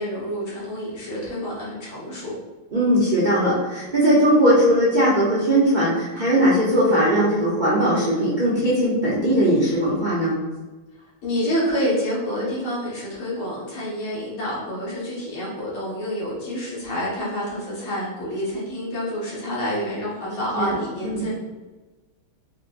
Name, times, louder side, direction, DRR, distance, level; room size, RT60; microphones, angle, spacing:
voice 1, 0.0-2.3 11.2-21.3, equal, 75° left, -7 dB, 2.3 m, -28 dB
voice 2, 2.7-10.4 20.5-20.7 21.0-21.3, equal, 85° right, -7 dB, 0.4 m, -19 dB
5.0 x 3.0 x 2.5 m, 1.2 s
omnidirectional pair, 2.2 m